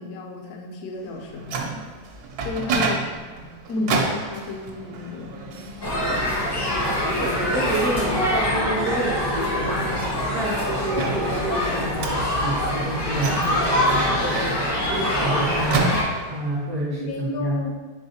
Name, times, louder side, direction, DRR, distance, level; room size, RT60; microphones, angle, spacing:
voice 1, 0.0-1.6 2.4-3.1 3.7-5.4 6.7-7.2 16.9-17.7, left 3 dB, 75° left, 2 dB, 1.1 m, -32 dB
Microwave oven, 1.1-16.6, right 3 dB, 75° right, 1.1 m, -32 dB
sound 1, 5.8-16.0, left 1 dB, 35° left, 0.4 m, -24 dB
voice 2, 6.8-17.6, right 1 dB, 45° right, -3 dB, 0.5 m, -29 dB
4.6 x 3.4 x 2.8 m, 1.3 s
omnidirectional pair, 1.7 m